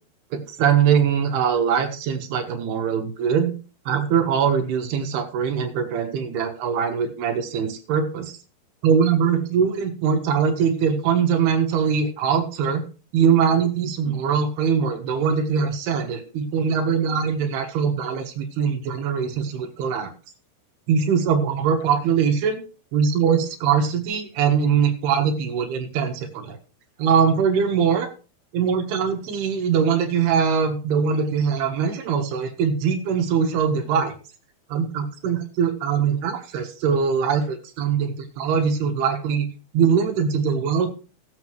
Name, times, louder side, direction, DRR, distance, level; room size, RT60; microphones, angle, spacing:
voice 1, 0.3-3.5 3.9-8.3 8.8-12.8 13.1-20.1 20.9-22.6 22.9-26.6 27.0-28.1 28.5-34.1 34.7-39.5 39.7-40.9, right 7 dB, 80° right, 5 dB, 3.3 m, -22 dB
18.5 x 7.6 x 3.1 m, 0.35 s
omnidirectional pair, 4.6 m